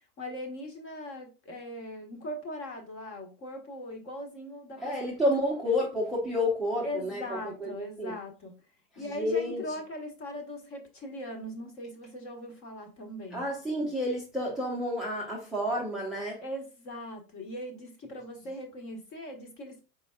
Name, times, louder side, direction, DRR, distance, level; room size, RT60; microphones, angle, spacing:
voice 1, 0.2-5.1 6.8-8.5 9.0-13.4 16.4-19.8, left 1 dB, 30° left, 1.2 m, -40 dB
voice 2, 4.8-7.7 8.0-8.1 8.9-9.6 13.3-16.4, left 1 dB, ahead, 0.7 m, -30 dB
4.4 x 4.0 x 2.3 m
hypercardioid pair, 130°, 46 cm